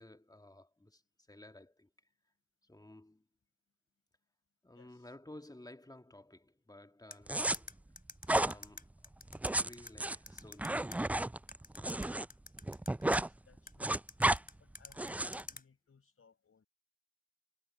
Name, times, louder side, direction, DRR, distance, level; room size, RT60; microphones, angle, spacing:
voice 1, 0.0-2.1 2.6-3.3 4.6-7.8 8.3-9.1 9.4-11.1, left 1 dB, 10° left, 1.8 m, -55 dB
voice 2, 4.7-5.1 13.0-14.0 14.6-16.7, left 5 dB, 50° left, 4.8 m, -66 dB
sound 1, 7.1-11.0 11.5-13.2 13.7-15.6, left 3 dB, 30° left, 3.0 m, -48 dB
sound 2, 7.3-7.6 8.2-8.5 9.3-12.2 12.5-13.3 13.6-14.4 15.0-15.4, right 1 dB, 5° right, 0.3 m, -32 dB
hypercardioid pair, 40°, 30 cm